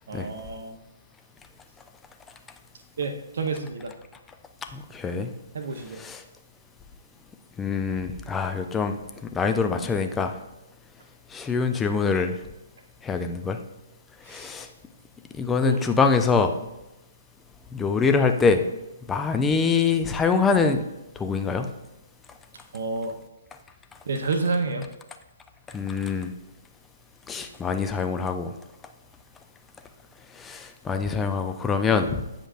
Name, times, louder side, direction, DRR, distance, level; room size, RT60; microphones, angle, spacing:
voice 1, 0.1-0.8 3.0-3.9 5.5-6.0 14.3-14.5 15.6-15.8 22.7-23.2 24.1-24.9, right 3 dB, 60° right, 5 dB, 0.7 m, -29 dB
voice 2, 4.7-5.3 5.9-6.2 7.6-9.0 9.3-10.3 11.3-12.4 13.0-13.6 14.3-14.7 15.3-16.5 17.7-18.6 19.1-20.8 21.2-21.7 25.7-26.3 27.3-28.5 30.4-32.2, left 5 dB, 10° left, 7 dB, 0.5 m, -24 dB
8.5 x 5.1 x 2.5 m, 0.94 s
figure-of-eight pair, 130°, 0 cm